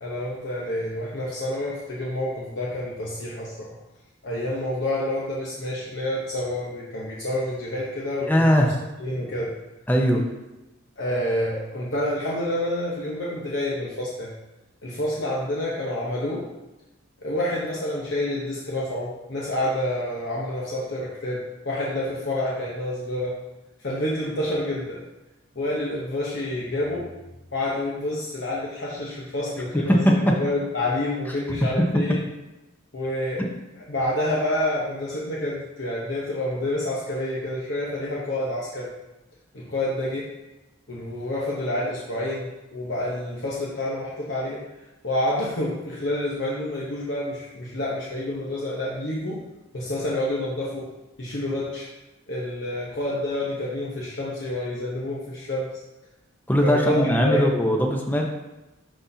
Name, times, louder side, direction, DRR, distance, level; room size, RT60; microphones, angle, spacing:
voice 1, 0.0-3.8 4.2-8.5 9.0-9.5 11.0-14.3 14.8-16.5 17.2-23.4 23.8-25.0 25.5-27.1 27.5-32.2 32.9-33.5 33.9-38.9 39.5-40.3 40.9-44.6 45.0-49.4 49.7-50.9 51.2-51.9 52.3-55.7 56.6-57.5, left 1 dB, 55° left, -5 dB, 1.0 m, -28 dB
voice 2, 8.2-8.7 9.9-10.2 29.9-30.4 31.5-31.6 56.5-58.2, equal, 10° left, 1 dB, 0.7 m, -20 dB
11.5 x 4.1 x 2.7 m, 1.0 s
head